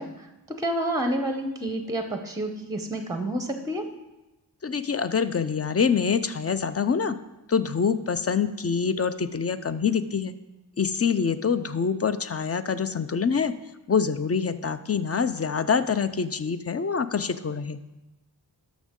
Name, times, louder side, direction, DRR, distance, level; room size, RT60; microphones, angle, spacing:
voice 1, 0.0-3.9, right 1 dB, 10° right, 6 dB, 0.7 m, -29 dB
voice 2, 4.6-7.2 7.5-10.3 10.8-13.5 13.9-17.8, left 6 dB, 35° left, 12 dB, 0.4 m, -25 dB
12.5 x 6.2 x 3.7 m, 1.0 s
wide cardioid pair, 85°, 42 cm